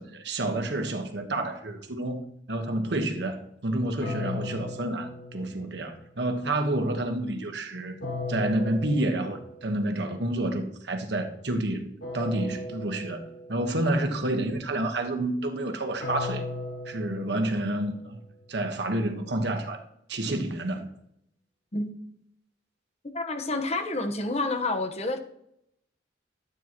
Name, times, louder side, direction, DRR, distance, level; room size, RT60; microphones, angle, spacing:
voice 1, 0.0-2.2 2.5-7.9 8.3-13.2 13.5-16.4 16.9-18.2 18.5-19.8 20.1-20.9, right 1 dB, 65° right, 1.3 m, -29 dB
sound 1, 4.0-6.1 8.0-9.8 12.0-13.8 16.0-18.2, left 2 dB, 80° left, 4.7 m, -37 dB
voice 2, 23.1-25.2, left 2 dB, 35° left, 1.1 m, -29 dB
12.5 x 9.1 x 3.0 m
head